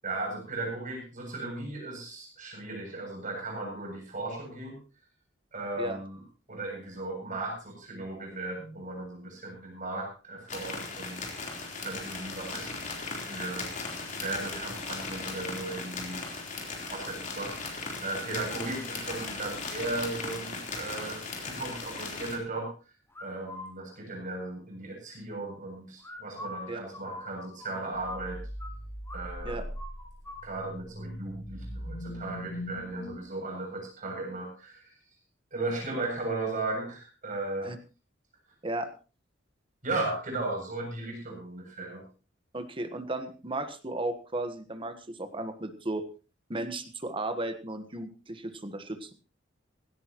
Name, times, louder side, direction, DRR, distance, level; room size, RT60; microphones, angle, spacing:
voice 1, 0.0-4.8 5.5-6.2 6.5-11.2 11.8-13.7 14.2-16.2 16.9-22.7 23.2-28.4 29.1-29.6 30.4-34.9 35.5-37.7 39.8-42.0, right 2 dB, 45° right, 1 dB, 7.5 m, -36 dB
sound 1, 10.5-22.4, left 3 dB, 45° left, 3.9 m, -37 dB
sound 2, 23.1-23.7 26.0-28.7 29.1-29.2 29.5-30.4, left 1 dB, 15° left, 3.5 m, -43 dB
sound 3, 27.9-33.2, equal, 60° left, 2.6 m, -40 dB
voice 2, 42.5-46.1 46.5-49.1, right 2 dB, 30° right, 8 dB, 1.3 m, -35 dB
17.0 x 16.5 x 3.0 m, 0.34 s
head